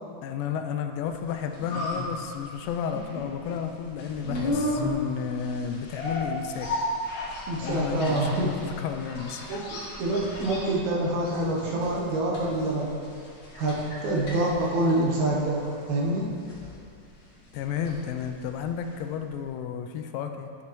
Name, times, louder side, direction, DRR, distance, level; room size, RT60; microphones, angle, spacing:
voice 1, 0.2-6.7 7.6-9.7 17.5-20.6, left 7 dB, 90° left, 6 dB, 2.2 m, -32 dB
sound 1, 1.1-19.1 19.4-19.5, left 1 dB, 50° left, 1.5 m, -35 dB
voice 2, 7.5-8.6 9.5-9.6 10.0-13.0 13.6-16.3, right 1 dB, 70° right, -4 dB, 2.0 m, -26 dB
9.2 x 7.4 x 3.0 m, 2.6 s
omnidirectional pair, 3.9 m